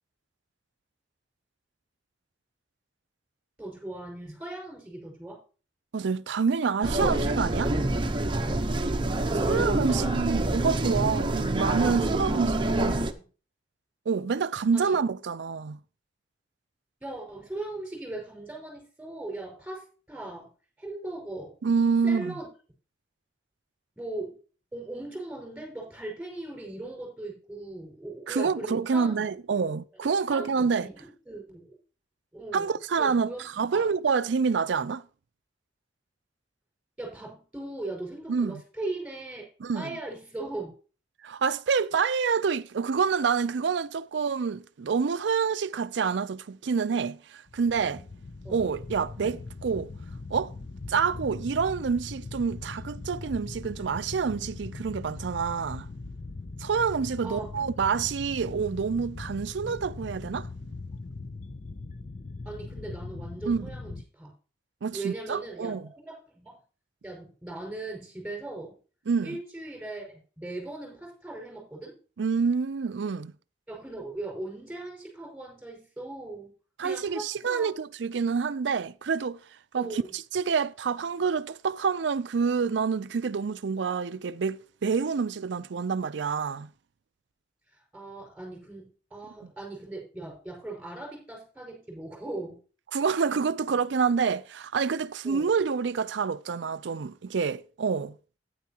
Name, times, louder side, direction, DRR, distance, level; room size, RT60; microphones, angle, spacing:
voice 1, 3.6-5.4 9.4-10.3 12.9-13.2 14.7-15.0 17.0-20.5 20.8-21.5 22.0-22.5 24.0-24.4 24.7-29.3 30.3-31.8 32.3-33.9 37.0-39.5 39.7-40.7 48.4-48.7 49.2-49.4 57.2-57.8 62.4-64.3 64.9-66.6 67.0-68.8 69.2-72.0 73.7-76.5 76.8-77.7 79.8-80.2 87.7-92.6 95.2-95.5, right 2 dB, 5° right, 5.3 m, -39 dB
voice 2, 5.9-7.8 9.3-13.0 14.1-15.8 21.6-22.3 28.3-30.9 32.5-35.0 38.3-38.6 39.6-39.9 41.2-48.0 48.5-49.9 50.3-50.5 50.9-55.9 56.6-60.5 63.5-63.7 64.8-65.9 69.1-69.4 72.2-73.3 76.8-79.4 79.7-86.7 92.9-98.1, right 5 dB, 70° right, 0.4 m, -27 dB
sound 1, 6.8-13.1, right 1 dB, 25° right, 0.8 m, -27 dB
sound 2, 47.5-64.0, left 3 dB, 45° left, 0.5 m, -40 dB
12.0 x 9.5 x 2.9 m
head